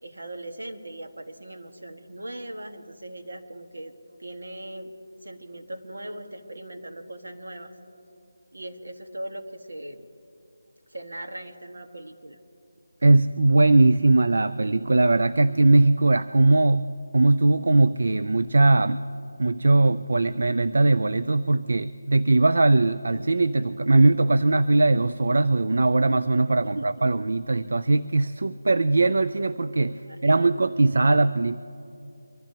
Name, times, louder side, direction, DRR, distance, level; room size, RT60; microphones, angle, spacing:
voice 1, 0.0-3.9 4.2-4.9 5.2-7.7 8.5-10.1 10.9-12.4 26.7-27.0 30.0-30.5, right 1 dB, 80° right, 4 dB, 1.7 m, -39 dB
voice 2, 13.0-19.0 19.4-31.6, right 2 dB, 65° right, 12 dB, 0.4 m, -20 dB
24.0 x 15.0 x 2.9 m, 2.8 s
figure-of-eight pair, 175°, 0 cm